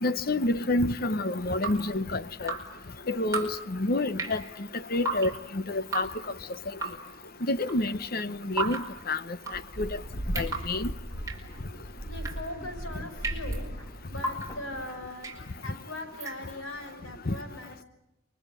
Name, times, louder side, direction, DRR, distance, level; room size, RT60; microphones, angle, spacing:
voice 1, 0.0-2.5 3.1-4.4 4.9-6.1 7.5-9.2 9.5-10.0 10.3-10.9 17.3-17.4, left 2 dB, 45° left, 0.9 m, -28 dB
Drip, 1.4-16.8, right 3 dB, 15° right, 5.1 m, -38 dB
sound 1, 9.5-15.0, right 1 dB, 15° left, 3.2 m, -38 dB
voice 2, 12.1-17.8, left 1 dB, 70° left, 5.6 m, -40 dB
29.5 x 23.5 x 8.5 m
head